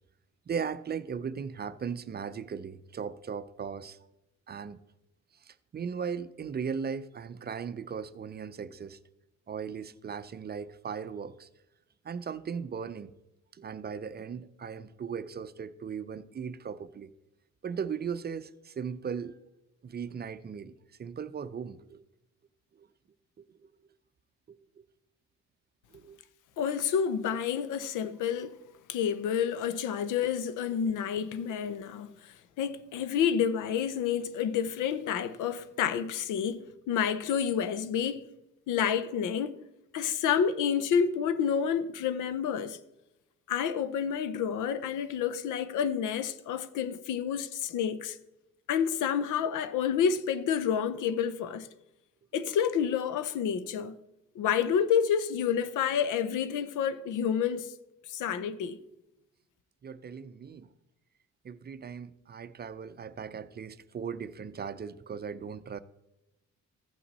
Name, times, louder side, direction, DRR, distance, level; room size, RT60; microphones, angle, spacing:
voice 1, 0.5-4.0 4.5-4.8 5.4-9.0 9.5-11.5 12.0-13.1 13.5-17.1 17.6-19.4 19.8-20.7 21.0-22.0 22.8-22.9 23.4-23.7 24.5-24.9 25.9-26.2 59.8-60.7 61.4-65.8, right 6 dB, 35° right, 0.5 m, -38 dB
voice 2, 26.6-28.6 28.9-38.3 38.7-39.6 39.9-42.8 43.5-48.2 48.7-51.7 52.3-54.0 54.3-57.7 58.1-58.8, left 8 dB, 85° left, 0.7 m, -29 dB
15.0 x 5.8 x 4.1 m
cardioid pair, 90°, 30 cm